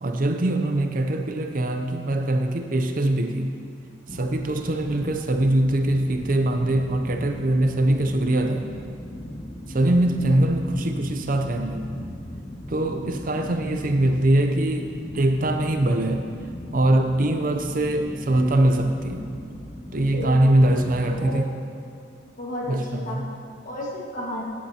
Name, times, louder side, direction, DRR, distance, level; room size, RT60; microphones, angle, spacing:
voice 1, 0.0-3.5 4.1-8.6 9.7-12.0 12.7-14.9 15.1-16.3 16.7-19.3 19.9-21.4 22.7-23.3, right 1 dB, 45° right, 5 dB, 0.6 m, -22 dB
sound 1, 4.1-21.4, left 1 dB, 20° left, 0.6 m, -38 dB
voice 2, 20.1-20.8 21.1-21.5 22.4-24.4, left 1 dB, 45° left, -3 dB, 1.7 m, -33 dB
15.5 x 9.3 x 2.9 m, 2.4 s
head